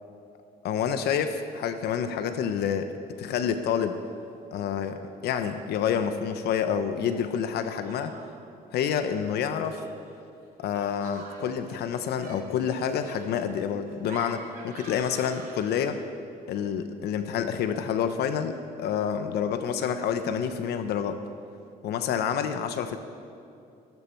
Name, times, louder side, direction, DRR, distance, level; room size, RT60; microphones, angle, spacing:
voice 1, 0.6-2.9 3.2-4.0 4.5-8.1 8.7-9.8 10.6-16.0 16.5-21.2 21.8-23.0, left 8 dB, 75° left, 9 dB, 0.9 m, -28 dB
Laughter, 3.1-3.5 3.8-4.4 4.8-5.7 7.0-8.5 9.2-16.1, right 3 dB, 55° right, 3.1 m, -48 dB
18.0 x 14.0 x 4.5 m, 2.6 s
cardioid pair, 110°, 17 cm